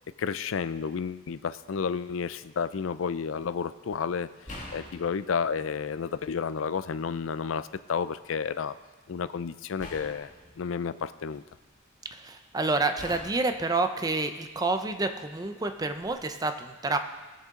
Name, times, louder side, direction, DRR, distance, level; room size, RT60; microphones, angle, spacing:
voice 1, 0.2-4.3 4.7-8.8 9.1-10.3 10.6-11.4, left 6 dB, 80° left, 14 dB, 0.4 m, -31 dB
sound 1, 4.4-6.3 6.8-7.7 9.8-11.7 13.0-14.8 15.9-16.1, left 1 dB, 40° left, 2.2 m, -46 dB
voice 2, 12.1-17.0, right 3 dB, 20° right, 7 dB, 0.6 m, -28 dB
20.0 x 6.7 x 3.7 m, 1.2 s
head